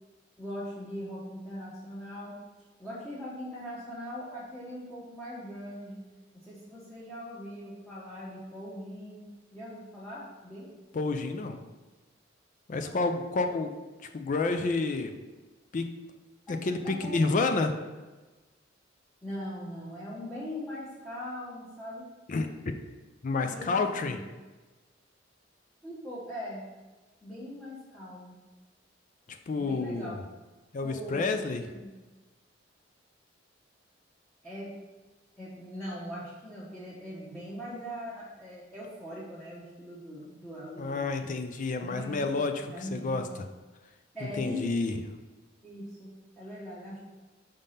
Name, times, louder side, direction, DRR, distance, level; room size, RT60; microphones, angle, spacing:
voice 1, 0.4-2.4 2.8-6.0 6.3-9.3 9.5-10.7 12.7-13.0 16.5-16.6 16.8-17.3 19.2-22.1 23.4-24.2 25.8-26.6 27.2-28.3 29.6-30.2 30.8-31.2 31.6-31.9 34.4-34.7 35.4-41.1 41.8-42.3 42.7-43.4 44.1-44.7 45.6-47.0, equal, 5° left, -10 dB, 1.1 m, -40 dB
voice 2, 10.9-11.6 12.7-13.7 14.1-15.2 15.7-15.9 16.5-17.7 22.3-22.5 23.2-24.2 29.5-30.2 30.7-31.6 40.8-43.2 44.2-45.0, left 3 dB, 45° left, 6 dB, 0.4 m, -29 dB
5.1 x 3.6 x 5.6 m, 1.2 s
head